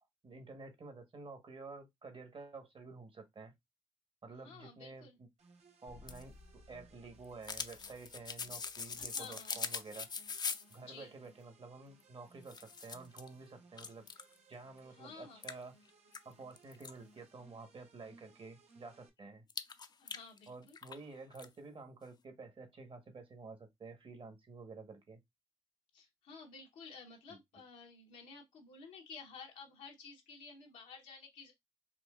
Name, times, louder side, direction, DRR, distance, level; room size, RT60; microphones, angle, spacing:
voice 1, 0.2-3.5 4.2-5.3 5.8-10.1 10.7-14.0 14.5-15.7 16.2-19.4 20.5-25.2 27.3-27.4, right 3 dB, 45° right, 1.1 m, -51 dB
voice 2, 4.4-5.2 9.0-9.6 10.8-11.2 14.9-15.4 20.0-20.8 25.9-31.5, left 5 dB, 90° left, 0.9 m, -53 dB
sound 1, 5.4-19.1, right 3 dB, 65° right, 0.8 m, -65 dB
sound 2, 5.9-10.8 12.0-12.1 12.4-13.3 13.8-14.4 14.8-14.9 15.4-16.9 19.5-21.0 21.3-21.5, left 5 dB, 35° left, 0.4 m, -43 dB
4.3 x 2.5 x 2.3 m
supercardioid pair, 55°, 12 cm